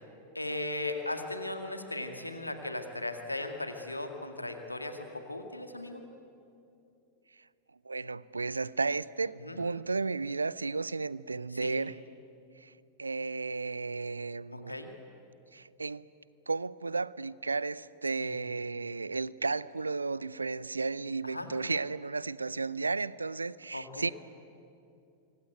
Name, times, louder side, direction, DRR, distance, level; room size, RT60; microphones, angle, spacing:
voice 1, 0.3-6.0 9.4-9.6 11.5-11.8 14.5-14.9 18.2-18.3 21.2-21.5 23.7-24.1, left 2 dB, 85° left, 6 dB, 2.1 m, -37 dB
voice 2, 7.8-12.0 12.6-12.7 13.0-14.7 15.5-16.1 16.5-24.1, right 4 dB, 80° right, 21 dB, 0.5 m, -33 dB
25.5 x 24.5 x 9.2 m, 2.6 s
figure-of-eight pair, 90°, 0 cm